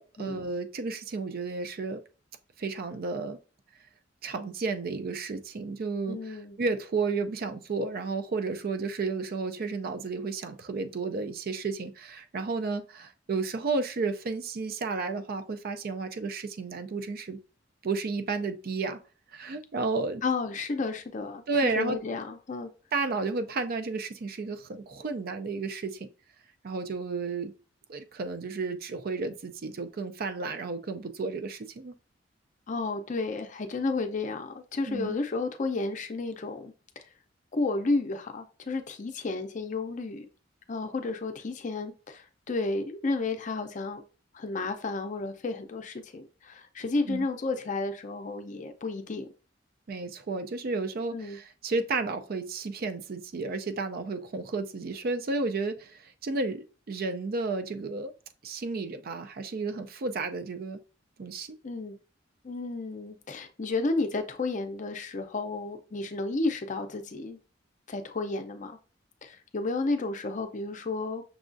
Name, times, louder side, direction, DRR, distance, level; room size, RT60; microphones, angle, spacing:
voice 1, 0.0-2.0 2.6-3.4 4.2-17.4 17.8-19.0 19.3-20.2 21.5-22.0 22.9-26.1 26.6-27.5 27.9-31.9 34.9-35.2 47.1-47.3 49.9-58.1 58.4-60.8 61.2-61.6, right 3 dB, 50° right, 0.4 m, -32 dB
voice 2, 6.1-6.6 20.2-22.7 32.7-37.0 37.5-40.3 40.7-44.0 44.3-49.3 51.1-51.4 61.6-62.0 62.4-67.4 67.9-68.8 69.2-71.2, left 3 dB, 40° left, 0.5 m, -32 dB
6.1 x 2.3 x 2.5 m
head